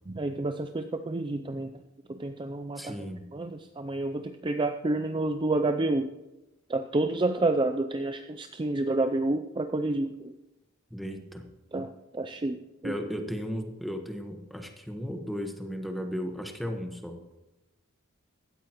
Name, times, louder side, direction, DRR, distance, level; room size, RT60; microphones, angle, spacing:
voice 1, 0.1-1.7 2.1-3.0 3.3-6.1 6.7-10.3 11.7-13.0, right 2 dB, 20° right, 7 dB, 0.4 m, -29 dB
voice 2, 2.8-3.3 10.9-11.5 12.8-17.3, equal, ahead, 4 dB, 1.3 m, -35 dB
16.5 x 13.5 x 3.0 m, 1.0 s
head